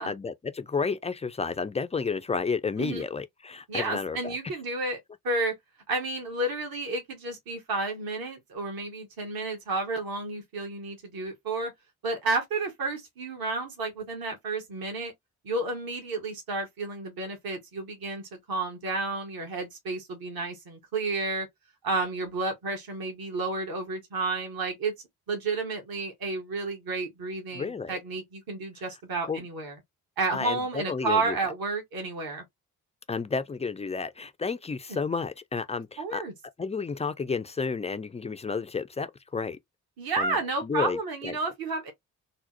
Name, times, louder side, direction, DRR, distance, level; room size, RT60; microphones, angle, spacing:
voice 1, 0.0-4.4 27.5-27.9 29.3-29.4 30.3-31.4 33.1-36.2 36.6-39.6 40.2-40.4 40.6-41.0 41.2-41.3, left 5 dB, 15° left, 0.3 m, -31 dB
voice 2, 3.7-5.5 5.9-11.7 12.0-15.1 15.4-21.5 21.8-24.9 25.3-29.7 30.2-32.4 36.0-36.3 40.0-41.9, right 3 dB, 50° right, 1.4 m, -31 dB
3.9 x 2.0 x 2.7 m
hypercardioid pair, 40°, 44 cm